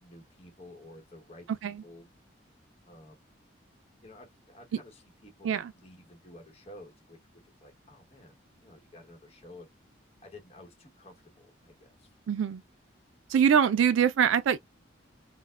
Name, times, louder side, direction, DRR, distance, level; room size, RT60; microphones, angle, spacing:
voice 1, 0.0-2.1 2.8-3.3 4.0-7.2 7.4-8.3 8.6-9.7 10.2-12.1, left 1 dB, 30° left, 0.9 m, -52 dB
voice 2, 12.3-12.6 13.3-14.6, right 8 dB, 80° right, 0.3 m, -24 dB
4.3 x 2.1 x 2.3 m
head